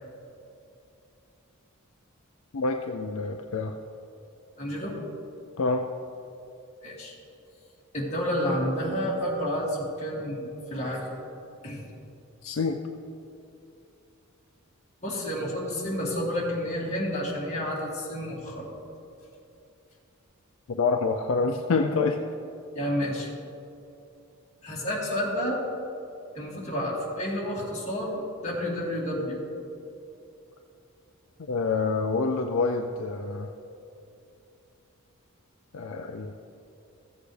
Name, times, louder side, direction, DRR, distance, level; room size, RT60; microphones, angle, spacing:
voice 1, 2.5-3.7 5.6-5.9 12.4-12.8 20.7-22.2 31.5-33.5 35.7-36.3, left 4 dB, 65° left, 4 dB, 0.5 m, -27 dB
voice 2, 4.6-5.0 6.8-7.1 7.9-11.2 11.6-11.8 15.0-18.8 22.7-23.3 24.6-25.6 26.3-29.4, equal, 30° left, -5 dB, 2.4 m, -30 dB
15.0 x 8.3 x 3.3 m, 2.8 s
head